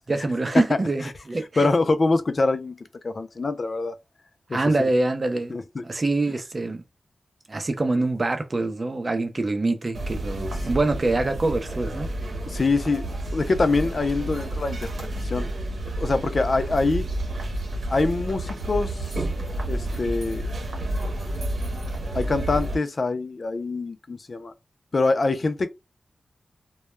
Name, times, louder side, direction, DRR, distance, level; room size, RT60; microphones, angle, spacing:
voice 1, 0.1-1.7 4.5-5.5 5.8-6.8 7.5-12.1, right 2 dB, 40° right, 0.6 m, -25 dB
voice 2, 1.6-2.8 3.0-4.0 4.5-4.9 5.5-5.8 10.6-10.7 12.5-13.1 13.3-15.5 16.0-17.0 17.9-19.2 19.7-20.5 22.1-24.5 24.9-25.7, left 3 dB, 50° left, 0.4 m, -24 dB
sound 1, 9.9-22.8, right 1 dB, 70° right, 0.9 m, -30 dB
2.2 x 2.1 x 3.0 m
cardioid pair, 70°, 0 cm